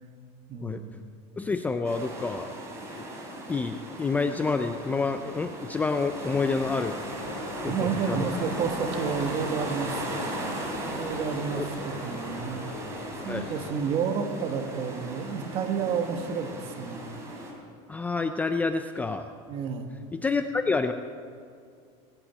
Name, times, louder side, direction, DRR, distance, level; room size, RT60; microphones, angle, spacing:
voice 1, 0.5-1.0 7.6-10.6 10.9-12.6 13.2-17.0 19.5-19.9, right 6 dB, 40° right, 5 dB, 1.5 m, -31 dB
voice 2, 1.4-2.5 2.9-3.1 3.5-7.0 7.6-8.3 11.6-11.7 13.3-13.5 17.9-19.3 20.1-20.9, left 4 dB, 10° left, 8 dB, 0.4 m, -28 dB
sound 1, 1.8-17.5, right 1 dB, 20° right, 3.3 m, -37 dB
sound 2, 6.1-13.7, left 3 dB, 70° left, 4.4 m, -41 dB
19.5 x 8.9 x 8.1 m, 2.2 s
cardioid pair, 165°, 15 cm